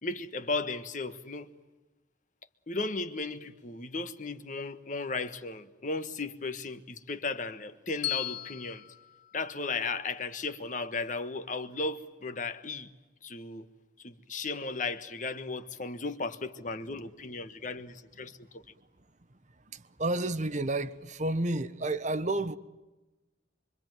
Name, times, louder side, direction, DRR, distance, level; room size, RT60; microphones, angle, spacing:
voice 1, 0.0-1.5 2.7-8.9 9.3-12.9 13.2-13.7 14.0-18.6, left 3 dB, 45° left, 1.4 m, -35 dB
Bell, 8.0-10.2, left 15 dB, 80° left, 2.4 m, -38 dB
voice 2, 19.7-22.6, right 2 dB, 45° right, 1.0 m, -31 dB
25.5 x 25.0 x 9.3 m
head